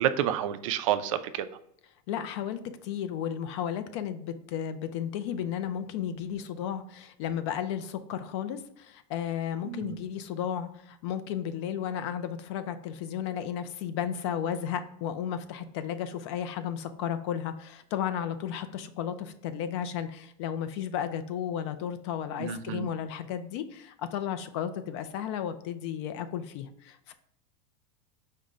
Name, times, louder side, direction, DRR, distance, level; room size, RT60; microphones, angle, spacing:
voice 1, 0.0-1.5 9.6-10.0 22.4-22.9, right 10 dB, 50° right, 10 dB, 0.4 m, -29 dB
voice 2, 2.1-27.1, left 9 dB, 45° left, 11 dB, 0.4 m, -34 dB
5.2 x 2.1 x 4.7 m, 0.74 s
supercardioid pair, 165°, 21 cm